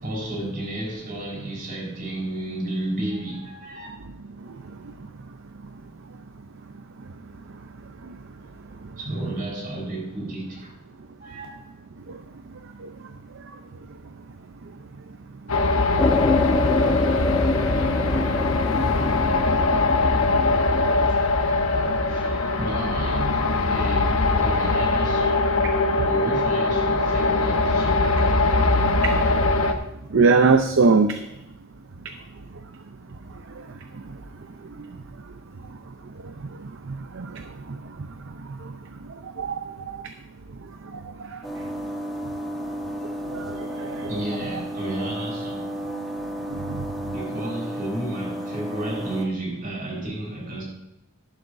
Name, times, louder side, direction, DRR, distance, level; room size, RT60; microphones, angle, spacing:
voice 1, 0.0-3.9 9.0-10.7 11.2-11.5 21.0-25.5 26.0-28.3 44.1-45.7 47.0-50.6, right 1 dB, 40° right, -1 dB, 4.5 m, -32 dB
sound 1, 15.5-29.7, left 3 dB, 70° left, 1.0 m, -22 dB
sound 2, 16.0-21.1, left 2 dB, 20° left, 0.3 m, -25 dB
voice 2, 30.1-31.2 37.2-37.3 39.4-39.7 43.3-43.4 43.8-44.1 46.5-46.8, right 4 dB, 60° right, 7 dB, 0.6 m, -20 dB
sound 3, 41.4-49.3, equal, ahead, 1.4 m, -33 dB
13.5 x 11.5 x 2.6 m, 0.87 s
head